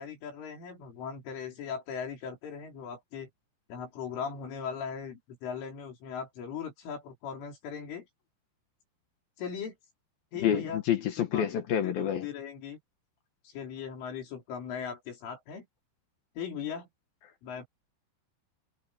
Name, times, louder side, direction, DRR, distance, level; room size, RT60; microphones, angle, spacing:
voice 1, 0.0-3.3 3.7-8.1 9.4-9.8 10.3-10.8 11.2-11.5 11.8-12.8 13.5-15.7 16.4-16.9 17.4-17.7, left 7 dB, 80° left, 7.2 m, -39 dB
voice 2, 10.4-12.3, left 9 dB, 65° left, 2.6 m, -28 dB
omnidirectional pair, 5.6 m